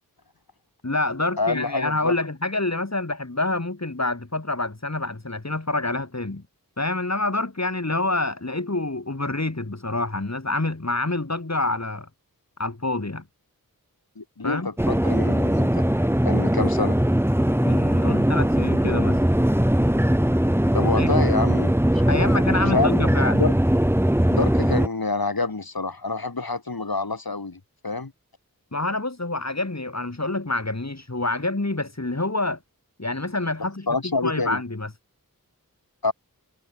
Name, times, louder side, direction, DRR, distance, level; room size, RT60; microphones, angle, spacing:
voice 1, 0.8-6.4 6.8-12.1 12.6-13.2 14.4-14.7 17.6-19.2 21.0-21.1 22.1-23.5 28.7-32.6 33.0-34.9, left 2 dB, 50° left, 6.1 m, -27 dB
voice 2, 1.4-2.1 14.2-15.9 16.2-17.0 20.7-21.7 22.7-22.9 23.4-23.5 24.3-28.1 33.9-34.6 36.0-36.1, left 3 dB, 85° left, 7.2 m, -27 dB
sound 1, 14.8-24.9, equal, 5° right, 2.1 m, -20 dB
wide cardioid pair, 50°, 35 cm